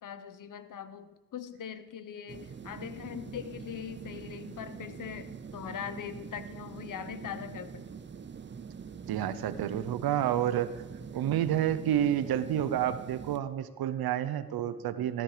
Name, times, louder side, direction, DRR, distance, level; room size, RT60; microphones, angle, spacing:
voice 1, 0.0-8.0, left 8 dB, 60° left, 12 dB, 1.2 m, -41 dB
sound 1, 2.3-13.4, right 6 dB, 30° right, 0.7 m, -44 dB
voice 2, 9.1-10.8 11.1-15.2, right 11 dB, 80° right, 13 dB, 0.9 m, -29 dB
14.5 x 13.0 x 5.0 m, 1.3 s
cardioid pair, 85°, 36 cm